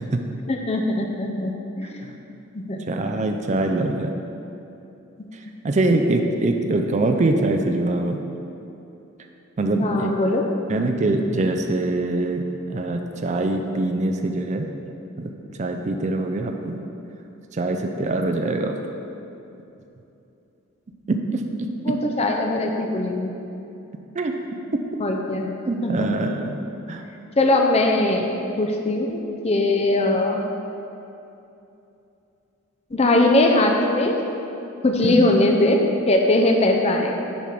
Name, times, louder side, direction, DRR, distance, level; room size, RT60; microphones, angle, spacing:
voice 1, 0.5-2.0 2.5-2.8 5.9-6.2 9.8-10.4 21.8-23.3 25.0-25.5 25.8-26.3 27.4-28.2 28.6-30.4 32.9-34.2 34.8-37.1, left 2 dB, 30° left, 1 dB, 0.5 m, -21 dB
voice 2, 2.9-4.1 5.6-8.2 9.6-10.1 10.7-12.4 12.7-14.7 15.2-15.3 15.6-16.8 17.5-18.8 21.1-21.4 24.1-24.3 25.7-26.6 26.9-27.0 35.0-35.3, right 2 dB, 35° right, 4 dB, 0.4 m, -23 dB
7.0 x 4.9 x 5.8 m, 2.8 s
head